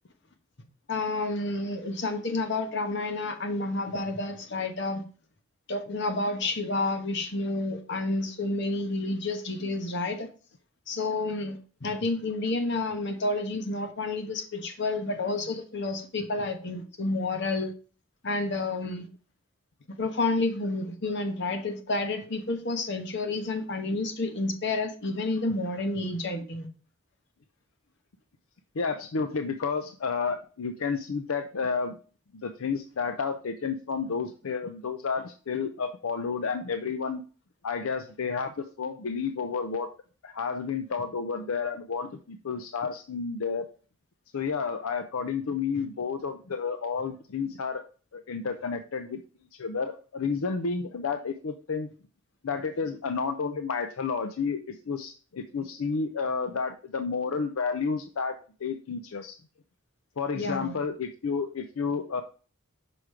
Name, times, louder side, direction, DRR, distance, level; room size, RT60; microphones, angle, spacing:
voice 1, 0.9-5.0 5.7-10.3 10.9-17.7 18.2-19.1 19.9-26.7 60.3-60.8, left 2 dB, 55° left, 1.2 m, -30 dB
voice 2, 28.8-32.0 32.3-37.2 37.6-39.9 40.2-43.7 44.3-47.8 48.1-49.2 49.6-51.9 52.4-59.4 60.2-62.2, left 5 dB, 80° left, 0.6 m, -31 dB
6.0 x 5.0 x 4.8 m
head